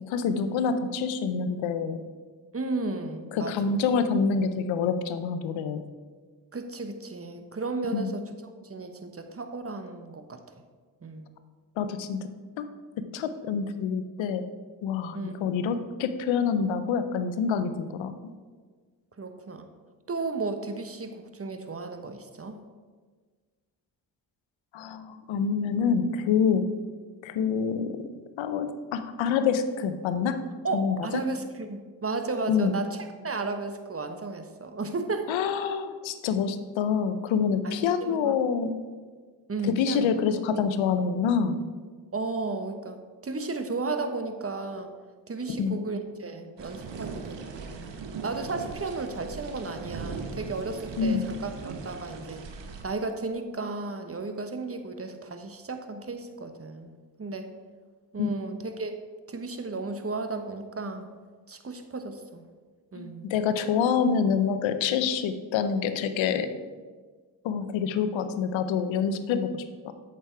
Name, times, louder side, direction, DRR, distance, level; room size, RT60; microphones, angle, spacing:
voice 1, 0.1-2.1 3.3-5.8 7.9-8.1 11.8-12.3 12.6-12.7 13.1-14.5 14.8-18.3 24.7-26.7 27.2-28.1 28.4-30.4 30.7-31.0 32.5-32.7 35.3-38.7 39.7-41.6 45.6-45.8 51.0-51.2 58.2-58.3 62.9-66.6 67.4-69.9, left 6 dB, 90° left, 11 dB, 0.7 m, -27 dB
voice 2, 2.5-3.8 6.5-8.2 8.6-10.4 11.0-11.3 15.1-15.3 19.2-19.7 20.1-22.6 30.6-35.3 37.6-38.3 39.5-40.1 42.1-44.9 45.3-47.9 48.2-52.4 52.8-56.9 57.2-57.5 58.1-59.0 59.3-61.1 61.5-62.4 62.9-63.3, right 3 dB, 30° right, 7 dB, 1.1 m, -34 dB
sound 1, 46.6-52.8, right 4 dB, 70° right, 1.1 m, -39 dB
8.0 x 6.1 x 4.6 m, 1.5 s
supercardioid pair, 40°, 45 cm